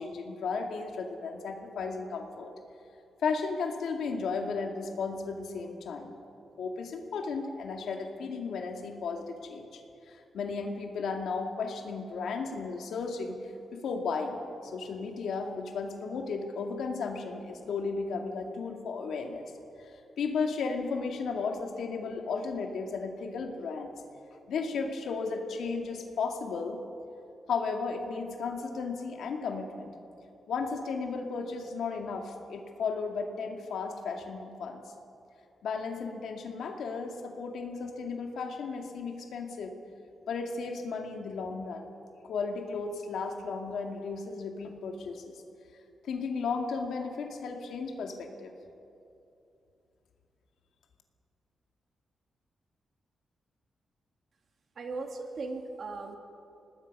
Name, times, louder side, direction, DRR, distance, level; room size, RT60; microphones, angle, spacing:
voice 1, 0.0-2.5 3.2-6.2 6.6-9.8 10.1-13.4 13.7-19.4 19.8-23.9 24.5-26.8 27.5-29.9 30.5-34.8 35.6-39.7 40.3-41.9 42.3-45.3 46.0-48.5, left 4 dB, 80° left, 3 dB, 2.1 m, -34 dB
voice 2, 54.8-56.2, right 3 dB, 45° right, 4 dB, 1.9 m, -37 dB
26.0 x 19.5 x 5.4 m, 2.7 s
wide cardioid pair, 175°, 0 cm